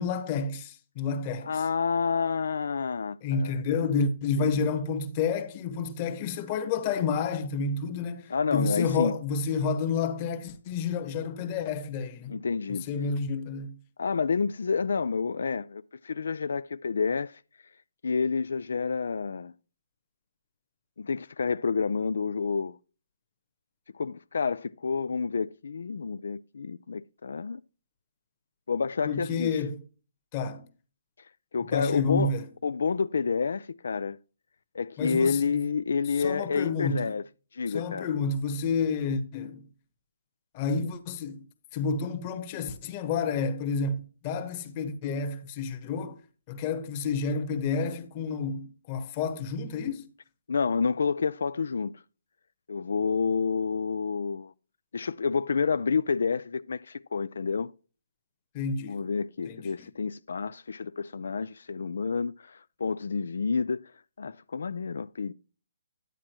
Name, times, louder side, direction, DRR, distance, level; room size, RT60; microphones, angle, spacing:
voice 1, 0.0-1.6 3.2-12.4 12.7-13.8 29.0-29.8 30.3-30.7 31.7-32.5 35.0-35.4 36.1-37.2 37.7-39.7 40.5-41.5 41.7-46.2 46.5-50.1 58.5-59.0 59.4-59.7, left 5 dB, 25° left, 1.1 m, -30 dB
voice 2, 1.4-3.6 4.4-4.7 8.3-9.1 12.3-12.8 14.0-17.4 18.0-19.5 21.0-22.8 23.9-27.6 28.7-29.6 31.5-32.3 32.6-34.2 34.7-37.2 37.5-38.1 50.5-52.0 52.7-54.5 54.9-57.7 58.9-63.9 64.2-65.3, left 5 dB, 75° left, 0.3 m, -29 dB
10.5 x 8.5 x 3.0 m
hypercardioid pair, 165°, 0 cm